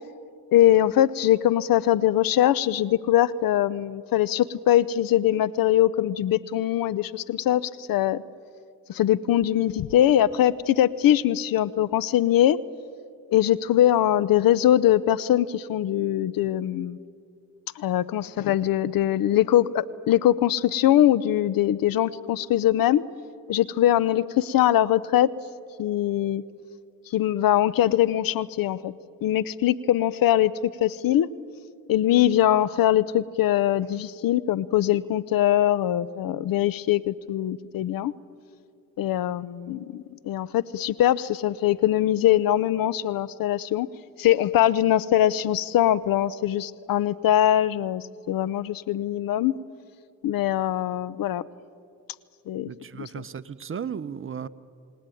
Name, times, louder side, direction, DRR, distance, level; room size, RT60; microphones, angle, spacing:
voice 1, 0.5-8.2 8.9-12.6 13.3-17.0 17.8-23.0 23.5-25.3 25.8-26.4 27.1-28.9 29.2-30.5 30.8-31.3 31.9-38.1 39.0-43.9 44.2-49.5 50.2-51.4 52.5-52.7, left 12 dB, 70° left, 20 dB, 0.8 m, -22 dB
voice 2, 52.7-54.5, right 7 dB, 35° right, 13 dB, 0.9 m, -35 dB
29.0 x 18.5 x 9.2 m, 2.4 s
cardioid pair, 85°, 35 cm